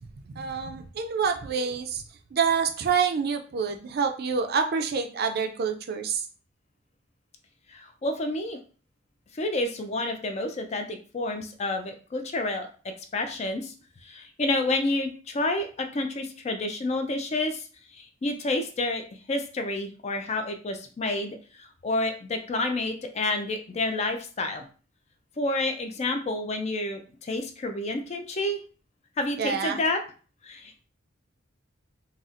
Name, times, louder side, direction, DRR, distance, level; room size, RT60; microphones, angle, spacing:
voice 1, 0.4-2.0 2.3-6.2 29.4-29.8, right 6 dB, 50° right, 6 dB, 0.4 m, -27 dB
voice 2, 7.7-8.6 9.3-12.7 13.1-13.7 14.0-17.7 17.9-24.7 25.4-28.6 29.2-30.0 30.4-30.8, left 2 dB, 35° left, 6 dB, 0.4 m, -29 dB
4.0 x 2.1 x 2.5 m, 0.39 s
head